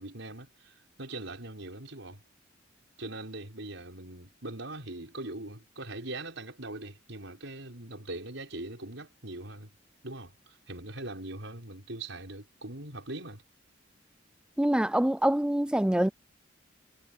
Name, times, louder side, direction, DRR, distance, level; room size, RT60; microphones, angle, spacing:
voice 1, 0.0-2.2 3.0-9.7 10.0-13.4, right 2 dB, 75° right, 5.9 m, -41 dB
voice 2, 14.6-16.1, right 1 dB, 5° right, 0.3 m, -25 dB
head